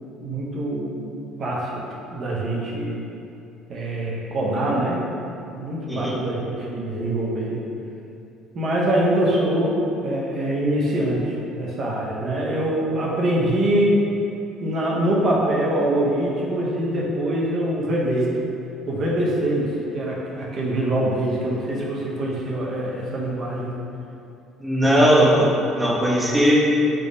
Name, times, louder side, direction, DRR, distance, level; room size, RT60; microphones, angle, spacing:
voice 1, 0.2-1.8 2.1-3.0 3.7-5.0 5.5-7.6 8.5-14.0 14.6-18.4 18.9-23.8 24.8-25.1, right 1 dB, 45° right, -3 dB, 0.7 m, -24 dB
voice 2, 24.6-26.6, equal, 10° right, -4 dB, 0.6 m, -18 dB
3.4 x 2.0 x 3.7 m, 2.7 s
supercardioid pair, 100°, 0 cm